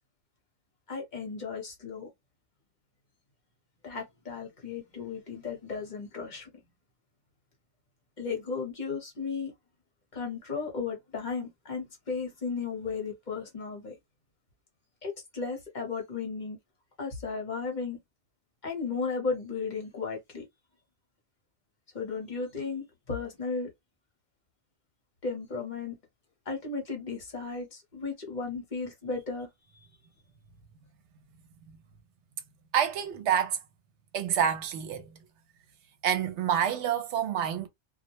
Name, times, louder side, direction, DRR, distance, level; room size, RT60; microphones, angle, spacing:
voice 1, 0.9-2.1 3.8-6.5 8.2-9.5 10.1-13.9 15.0-16.6 17.0-18.0 18.6-20.4 21.9-23.7 25.2-26.0 26.5-29.5, left 4 dB, 45° left, 1.0 m, -35 dB
voice 2, 32.7-33.6 34.1-35.1 36.0-37.7, right 9 dB, 75° right, 0.9 m, -27 dB
2.3 x 2.1 x 2.7 m
omnidirectional pair, 1.2 m